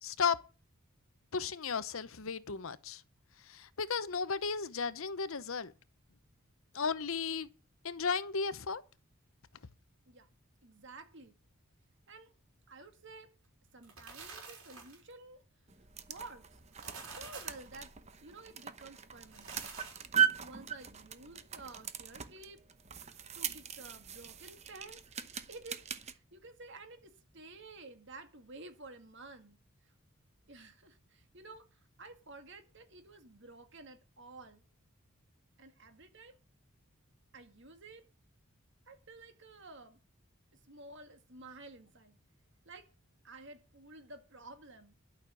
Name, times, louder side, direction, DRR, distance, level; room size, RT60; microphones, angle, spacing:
voice 1, 0.0-0.4 1.3-3.0 3.4-5.7 6.7-7.5 7.8-8.8, left 5 dB, 70° left, 0.9 m, -34 dB
voice 2, 10.6-11.3 12.1-12.3 12.7-13.3 13.7-15.4 16.1-16.6 17.1-17.9 18.2-19.6 20.4-22.6 23.0-25.0 25.5-29.6 29.8-29.9 30.5-34.6 35.6-36.4 37.3-38.0 38.9-40.0 40.7-42.2 42.7-42.9 43.2-44.9, right 3 dB, 55° right, 2.0 m, -52 dB
sound 1, 13.7-15.1 16.6-17.7 19.2-20.2, right 4 dB, 80° right, 6.0 m, -48 dB
sound 2, 15.7-26.1, right 9 dB, 30° right, 0.9 m, -38 dB
12.0 x 6.5 x 8.3 m
head